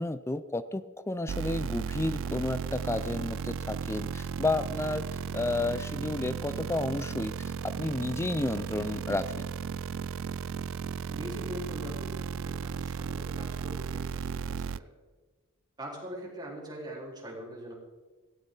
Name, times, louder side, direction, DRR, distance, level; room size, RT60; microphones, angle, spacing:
voice 1, 0.0-5.1 5.3-9.4, left 2 dB, 10° left, 13 dB, 0.4 m, -32 dB
sound 1, 1.3-14.8, right 6 dB, 60° right, 0.4 m, -35 dB
voice 2, 11.1-14.9 15.8-17.7, equal, 20° right, -3 dB, 4.3 m, -42 dB
17.5 x 16.0 x 4.0 m, 1.3 s
head